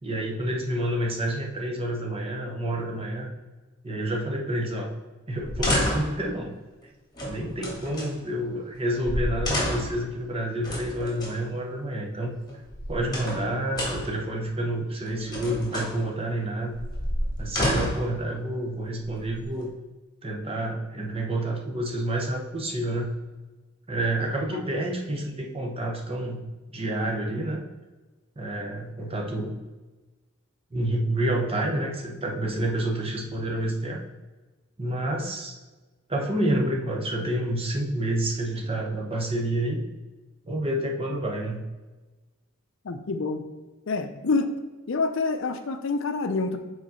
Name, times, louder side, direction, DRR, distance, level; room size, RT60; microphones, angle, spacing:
voice 1, 0.0-3.3 3.8-4.9 5.3-6.5 7.3-12.3 12.9-16.8 17.4-19.7 20.2-23.1 23.9-26.4 26.7-27.7 28.4-29.6 30.7-34.0 34.8-35.5 36.1-39.9 40.4-41.6, right 1 dB, 30° right, 0 dB, 0.9 m, -29 dB
sound 1, 5.4-6.2 7.1-8.1 8.8-8.9 9.0-10.0 10.6-11.3 12.5-13.4 13.7-14.2 15.1-15.9 16.7-18.1 18.9-19.6, equal, 20° left, 1.8 m, -29 dB
voice 2, 42.8-43.5 43.9-44.5 44.9-46.6, left 3 dB, 65° left, 8 dB, 0.5 m, -27 dB
5.2 x 3.9 x 5.5 m, 1.2 s
head